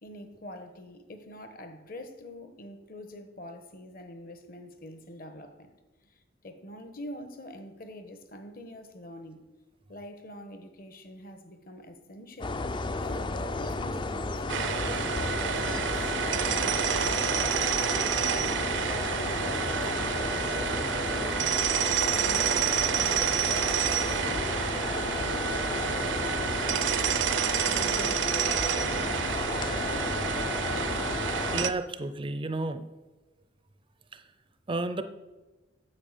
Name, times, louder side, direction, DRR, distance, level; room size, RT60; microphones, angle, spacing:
voice 1, 0.0-5.7 6.0-6.1 6.4-9.4 9.9-12.7 13.0-17.2 18.0-21.6 22.0-24.5 24.9-27.0 27.4-29.5 29.7-31.0, left 1 dB, 50° left, 1.2 m, -45 dB
sound 1, 12.4-31.7, left 3 dB, 25° left, 0.4 m, -33 dB
sound 2, 14.5-31.7, right 8 dB, 75° right, 0.6 m, -29 dB
voice 2, 31.5-32.9 34.1-34.2 34.7-35.0, right 2 dB, 25° right, 0.5 m, -32 dB
8.8 x 7.8 x 6.7 m
head